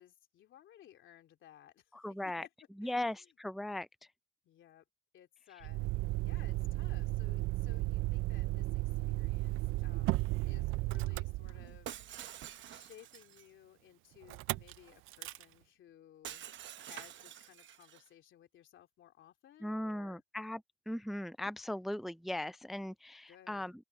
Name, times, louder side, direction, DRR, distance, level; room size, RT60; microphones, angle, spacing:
voice 1, 0.0-2.5 2.8-3.3 4.4-4.8 5.1-5.9 6.2-12.3 12.7-20.2 23.3-23.7, left 11 dB, 75° left, 3.2 m, -59 dB
voice 2, 1.9-2.4 2.8-3.9 19.6-20.6 20.9-23.7, left 1 dB, ahead, 0.4 m, -38 dB
Motor vehicle (road), 5.6-12.0 14.3-14.7 15.1-15.4, right 19 dB, 90° right, 0.4 m, -34 dB
Shatter, 11.9-13.5 16.2-18.1, right 11 dB, 70° right, 1.0 m, -47 dB
open air
cardioid pair, 90°, 20 cm